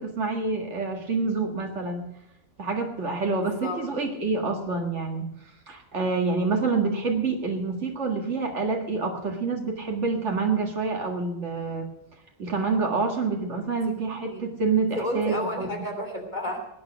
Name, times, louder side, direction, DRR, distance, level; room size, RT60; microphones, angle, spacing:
voice 1, 0.0-2.0 2.6-5.3 5.7-11.9 12.4-15.7, right 4 dB, 80° right, 1 dB, 2.1 m, -27 dB
voice 2, 3.3-3.8 13.7-14.4 14.9-16.6, left 1 dB, 40° left, 4 dB, 3.0 m, -32 dB
19.5 x 9.3 x 6.2 m, 0.87 s
omnidirectional pair, 1.2 m